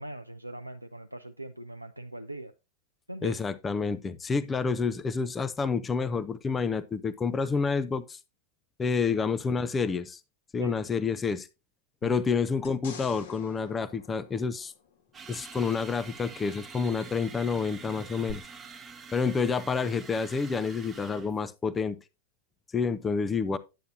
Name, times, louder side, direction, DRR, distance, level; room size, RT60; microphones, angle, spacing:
voice 1, 0.0-2.5 3.1-3.4 10.6-10.8 12.0-12.1, right 1 dB, 85° right, 0.4 m, -40 dB
voice 2, 3.2-8.2 8.8-10.2 10.5-11.5 12.0-14.7 15.3-18.4 19.1-22.0 22.7-23.6, left 5 dB, 15° left, 0.5 m, -29 dB
sound 1, 12.6-15.1 18.3-18.4, left 7 dB, 60° left, 1.8 m, -47 dB
sound 2, 15.1-21.4, right 5 dB, 20° right, 0.8 m, -46 dB
10.0 x 8.0 x 2.6 m
figure-of-eight pair, 90°, 0 cm